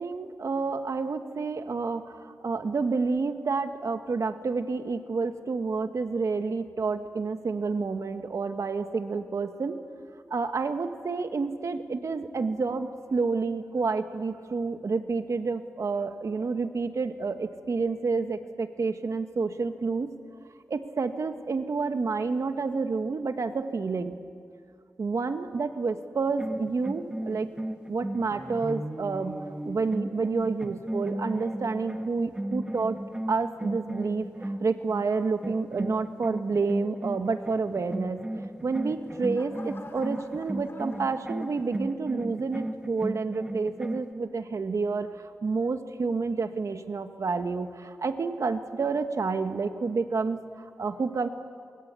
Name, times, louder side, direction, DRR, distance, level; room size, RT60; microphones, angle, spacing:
voice 1, 0.0-9.8 10.3-20.1 20.7-24.2 25.0-27.5 27.9-33.0 33.3-38.2 38.6-51.3, right 4 dB, 65° right, 7 dB, 1.7 m, -29 dB
sound 1, 26.3-35.1 35.4-44.1, right 1 dB, 15° right, 1.6 m, -35 dB
sound 2, 38.5-42.1 42.6-43.0, left 2 dB, 45° left, 3.7 m, -50 dB
27.5 x 22.0 x 8.4 m, 2.2 s
cardioid pair, 65°, 6 cm